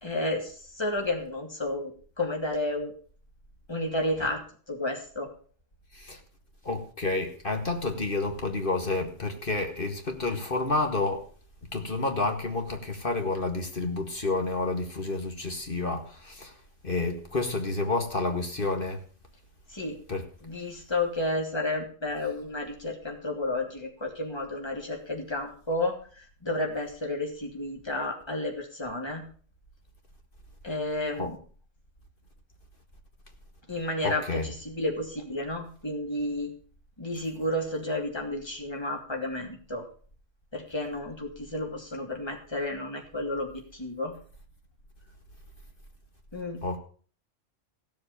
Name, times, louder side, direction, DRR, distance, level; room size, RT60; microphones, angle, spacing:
voice 1, 0.0-2.9 3.7-4.4 4.7-5.3 19.7-20.0 20.4-29.3 30.6-31.4 33.7-36.5 37.0-39.8 40.5-44.1 46.3-46.8, left 1 dB, 20° left, 1 dB, 2.8 m, -31 dB
voice 2, 6.6-11.2 11.7-16.5 16.8-19.0 20.1-20.2 31.2-31.3 34.0-34.5 46.6-46.8, left 3 dB, 45° left, 4 dB, 2.1 m, -29 dB
16.0 x 7.7 x 6.9 m, 0.43 s
omnidirectional pair, 1.3 m